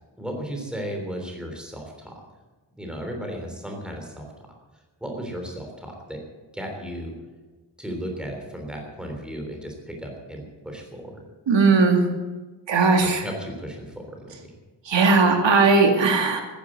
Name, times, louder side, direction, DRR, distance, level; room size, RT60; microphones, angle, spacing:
voice 1, 0.2-2.1 2.8-4.2 5.0-6.2 6.5-7.1 7.8-11.2 13.0-14.2, equal, ahead, 2 dB, 3.3 m, -35 dB
voice 2, 11.5-12.0 12.7-13.2 14.9-16.4, right 4 dB, 85° right, 4 dB, 2.3 m, -18 dB
14.0 x 10.5 x 7.9 m, 1.2 s
wide cardioid pair, 170°, 43 cm